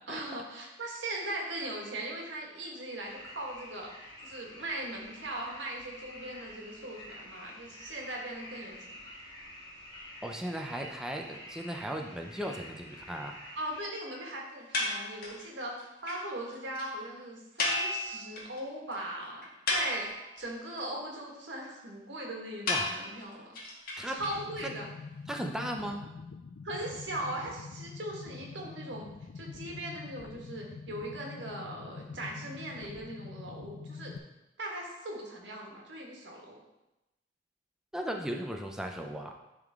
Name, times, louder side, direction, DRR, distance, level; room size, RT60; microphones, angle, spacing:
voice 1, 0.1-3.9 4.2-8.8 13.6-19.4 19.7-20.1 20.4-23.5 24.1-24.9 26.6-29.1 29.4-34.1 34.6-36.6, right 1 dB, 90° right, -1 dB, 1.7 m, -39 dB
sound 1, 3.0-13.8, equal, 25° left, 1.6 m, -48 dB
voice 2, 10.2-13.4 22.7-22.9 24.0-24.2 24.6-24.7 25.3-26.0 37.9-39.3, equal, 5° right, 2 dB, 0.5 m, -36 dB
sound 2, 14.7-15.5 15.8-15.9 16.1-16.2 16.5-16.6 16.8-16.9 17.6-18.6 18.9-19.0 19.4-20.4 22.7-24.6, left 2 dB, 55° left, 1.5 m, -33 dB
sound 3, 24.2-34.2, left 4 dB, 75° left, 0.4 m, -45 dB
10.5 x 3.7 x 3.6 m, 0.96 s
head